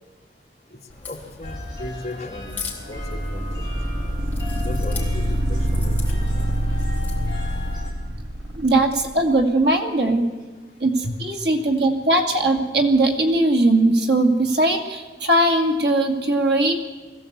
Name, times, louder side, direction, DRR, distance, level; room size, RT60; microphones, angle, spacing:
voice 1, 0.7-2.6 2.9-3.7 4.5-6.5 11.0-11.2, left 1 dB, 40° left, 1 dB, 2.0 m, -36 dB
Crack, 0.9-7.8, left 5 dB, 10° left, 3.7 m, -40 dB
sound 1, 1.4-7.9, left 2 dB, 25° right, 5.2 m, -38 dB
sound 2, 3.0-9.1, equal, 85° right, 1.7 m, -25 dB
voice 2, 8.6-10.3 10.8-16.8, right 2 dB, 70° right, 3 dB, 2.5 m, -19 dB
21.0 x 15.5 x 8.2 m, 1.4 s
head